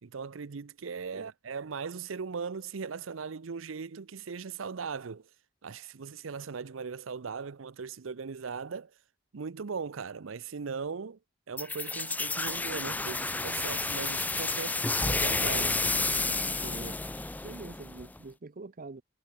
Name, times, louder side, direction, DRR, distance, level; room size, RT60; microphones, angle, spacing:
voice 1, 0.0-5.3 5.6-8.9 9.3-11.2 11.5-15.8, right 5 dB, 85° right, 0.6 m, -39 dB
sound 1, 11.6-18.2, left 3 dB, 10° left, 0.4 m, -31 dB
voice 2, 16.6-17.0 17.4-19.0, right 3 dB, 45° right, 0.7 m, -44 dB
head